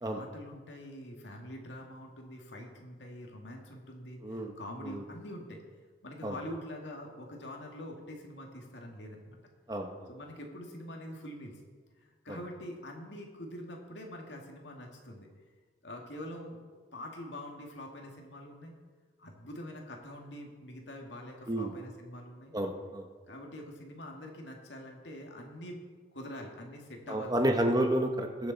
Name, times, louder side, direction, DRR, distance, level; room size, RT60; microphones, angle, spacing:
voice 1, 0.0-5.6 6.0-9.4 10.1-11.6 12.0-15.3 15.8-18.7 19.2-22.5 23.3-25.8 26.1-27.6, left 1 dB, 85° left, 1 dB, 2.0 m, -45 dB
voice 2, 4.2-4.5 4.8-5.0 6.2-6.3 9.7-10.1 12.3-12.4 21.5-21.7 22.5-23.1 27.1-28.5, right 1 dB, 20° right, 4 dB, 1.0 m, -30 dB
21.0 x 7.1 x 4.1 m, 1.5 s
head